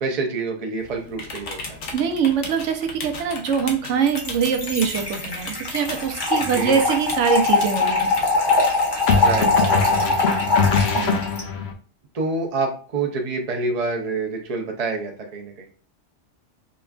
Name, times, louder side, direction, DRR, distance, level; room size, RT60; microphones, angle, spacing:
voice 1, 0.0-1.8 6.5-6.8 9.2-10.4 12.1-15.7, right 3 dB, 40° right, 2 dB, 0.7 m, -27 dB
sound 1, 0.8-10.3, left 3 dB, 85° left, 1.1 m, -37 dB
voice 2, 1.9-8.1 11.0-11.2, right 7 dB, 85° right, 6 dB, 0.9 m, -23 dB
Trickle dribble / Fill (with liquid), 4.1-11.4, left 3 dB, 25° left, 0.7 m, -22 dB
sound 2, 6.4-6.7 9.1-11.7, left 6 dB, 70° left, 0.8 m, -22 dB
5.1 x 2.3 x 2.3 m, 0.41 s
omnidirectional pair, 1.2 m